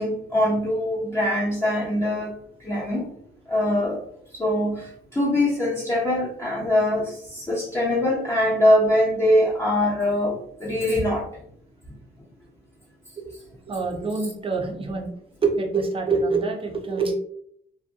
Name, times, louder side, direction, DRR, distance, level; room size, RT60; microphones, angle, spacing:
voice 1, 0.0-2.4 2.6-3.1 3.5-4.0 4.4-4.8 5.1-11.2, left 1 dB, 15° left, -6 dB, 0.6 m, -22 dB
voice 2, 13.7-15.1 15.4-17.1, right 4 dB, 25° right, 2 dB, 0.6 m, -25 dB
2.7 x 2.2 x 2.3 m, 0.67 s
cardioid pair, 90°, 20 cm